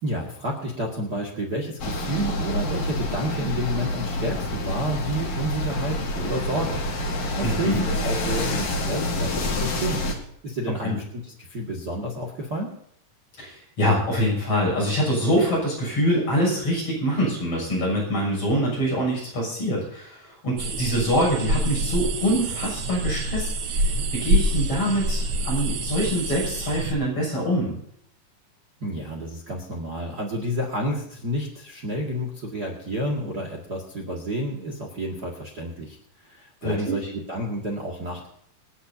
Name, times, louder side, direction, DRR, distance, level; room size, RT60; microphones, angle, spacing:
voice 1, 0.0-10.0 10.4-12.7 28.8-36.0 36.2-38.3, equal, 35° right, -1 dB, 2.1 m, -30 dB
sound 1, 1.8-10.1, left 1 dB, 60° left, 3.4 m, -27 dB
voice 2, 7.4-7.8 10.8-11.0 13.4-23.8 24.1-27.7 36.6-37.0, equal, 45° left, -3 dB, 8.0 m, -24 dB
sound 2, 20.6-26.9, right 1 dB, 75° right, 1.1 m, -26 dB
26.5 x 10.0 x 2.8 m, 0.69 s
omnidirectional pair, 3.8 m